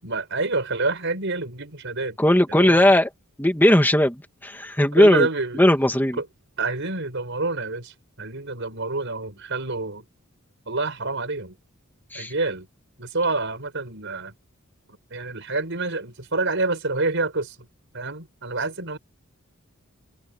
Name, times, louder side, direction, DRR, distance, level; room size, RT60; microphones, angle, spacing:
voice 1, 0.0-2.2 2.5-2.9 5.0-5.6 6.2-6.3 6.6-10.0 10.7-11.6 12.1-12.7 13.0-14.3 15.1-17.6 17.9-19.0, right 3 dB, 60° right, 5.4 m, -27 dB
voice 2, 2.2-3.1 3.4-5.3 5.6-6.2 12.1-12.3, left 1 dB, 10° left, 2.2 m, -18 dB
head